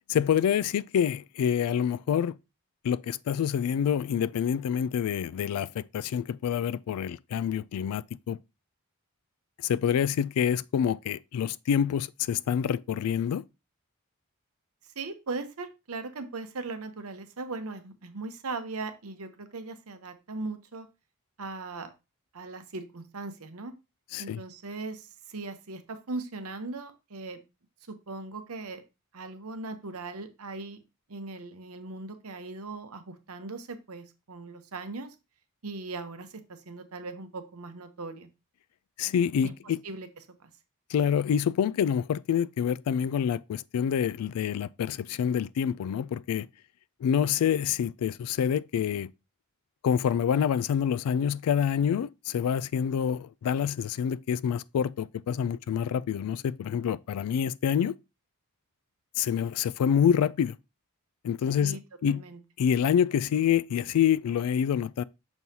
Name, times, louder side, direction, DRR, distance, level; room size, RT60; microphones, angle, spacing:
voice 1, 0.1-2.3 2.8-8.4 9.6-13.4 24.1-24.4 39.0-39.8 40.9-46.5 47.0-49.1 49.8-57.9 59.2-60.6 61.2-62.2 62.6-65.0, left 8 dB, 75° left, 0.3 m, -27 dB
voice 2, 14.9-20.9 21.4-21.9 22.3-23.7 24.2-27.4 27.9-28.8 29.1-30.8 31.1-35.1 35.6-38.3 39.4-39.5 39.8-40.1 40.4-40.5 61.6-61.8 62.1-62.4, right 3 dB, 70° right, 0.9 m, -39 dB
6.2 x 5.4 x 2.8 m
head